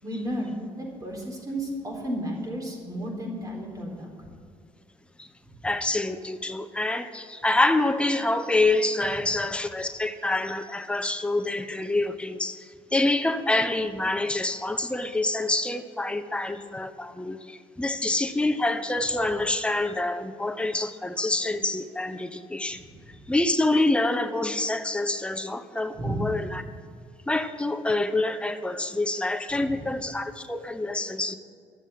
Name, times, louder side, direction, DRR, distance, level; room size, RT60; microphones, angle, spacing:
voice 1, 0.0-4.3 22.8-23.1 26.0-26.5 29.6-29.9, equal, 30° right, 0 dB, 3.9 m, -33 dB
voice 2, 5.6-22.8 23.3-26.6 27.3-31.4, left 2 dB, 10° left, 8 dB, 0.9 m, -26 dB
13.0 x 7.1 x 9.5 m, 2.3 s
cardioid pair, 95°, 12 cm